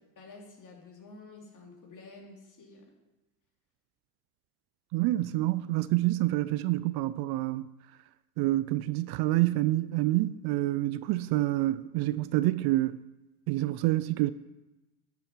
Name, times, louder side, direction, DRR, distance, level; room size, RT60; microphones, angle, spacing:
voice 1, 0.2-2.9 5.3-5.5, left 3 dB, 40° left, 3.2 m, -50 dB
voice 2, 4.9-7.7 8.4-13.0 13.5-14.3, right 17 dB, 55° right, 0.5 m, -27 dB
11.5 x 6.9 x 4.5 m
hypercardioid pair, 75°, 46 cm